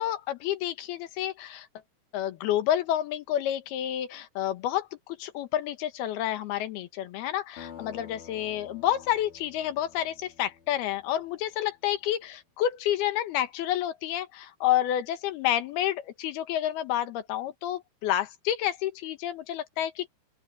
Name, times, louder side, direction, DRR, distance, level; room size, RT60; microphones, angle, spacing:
voice 1, 0.0-1.7 2.1-20.1, left 12 dB, 85° left, 3.3 m, -29 dB
sound 1, 7.6-11.9, left 7 dB, 55° left, 5.3 m, -49 dB
open air
omnidirectional pair, 4.3 m